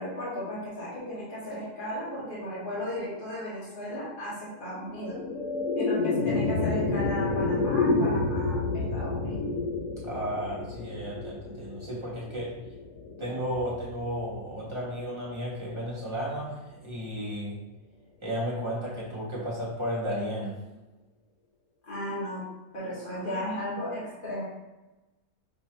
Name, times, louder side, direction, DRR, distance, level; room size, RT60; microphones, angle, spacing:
voice 1, 0.0-5.2 5.8-9.3 21.8-22.4 22.7-24.4, left 1 dB, 35° left, -9 dB, 1.9 m, -35 dB
sound 1, 4.8-15.3, left 3 dB, 80° left, 1.1 m, -30 dB
voice 2, 10.0-12.5 13.2-17.5 18.2-20.5, equal, 20° right, -7 dB, 1.3 m, -33 dB
6.1 x 2.9 x 3.0 m, 1.1 s
omnidirectional pair, 1.6 m